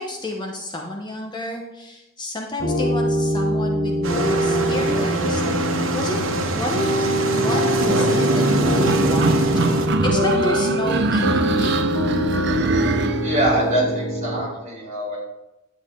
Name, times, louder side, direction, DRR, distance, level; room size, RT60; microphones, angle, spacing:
voice 1, 0.0-5.6 5.9-6.2 6.5-6.8 7.3-9.4 9.8-12.1, left 1 dB, 20° left, 1 dB, 0.9 m, -30 dB
sound 1, 2.6-14.4, equal, 85° left, 2.6 m, -23 dB
sound 2, 4.0-9.9, right 2 dB, 80° right, 1.2 m, -23 dB
sound 3, 8.9-13.7, right 3 dB, 55° right, 0.6 m, -23 dB
voice 2, 13.2-15.2, right 1 dB, 35° right, -4 dB, 4.1 m, -23 dB
10.5 x 8.4 x 3.8 m, 0.96 s
head